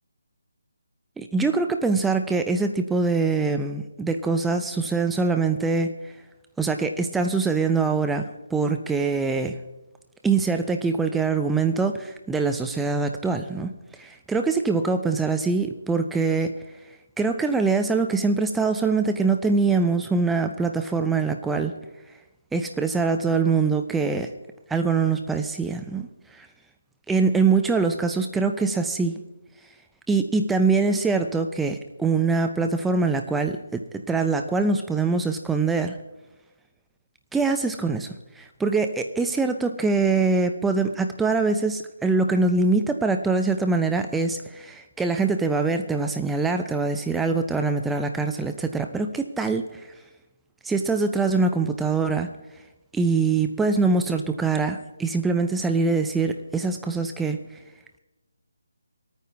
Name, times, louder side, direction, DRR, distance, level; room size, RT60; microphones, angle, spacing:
voice 1, 1.2-5.9 6.6-9.6 10.2-13.7 14.0-16.6 17.2-21.7 22.5-24.3 24.7-26.1 26.3-26.5 27.1-29.2 30.1-36.0 37.3-49.8 50.6-52.3 52.9-57.4, right 4 dB, 5° right, 6 dB, 0.6 m, -23 dB
24.0 x 9.4 x 3.4 m, 1.0 s
figure-of-eight pair, 155°, 0 cm